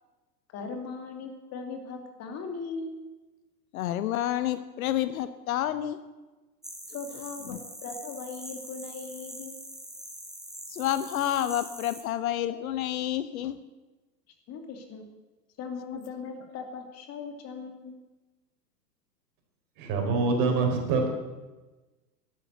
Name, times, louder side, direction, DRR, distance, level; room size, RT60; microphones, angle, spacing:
voice 1, 0.5-2.9 6.9-9.5 14.5-15.0 15.6-17.9, left 4 dB, 30° left, 4 dB, 2.6 m, -39 dB
voice 2, 3.7-6.0 7.5-7.6 10.7-13.6, left 12 dB, 55° left, 13 dB, 1.0 m, -29 dB
sound 1, 6.6-12.0, equal, ahead, 1.7 m, -43 dB
voice 3, 19.8-21.1, right 4 dB, 40° right, 3 dB, 4.2 m, -25 dB
12.0 x 11.5 x 8.1 m, 1.2 s
hypercardioid pair, 110°, 50 cm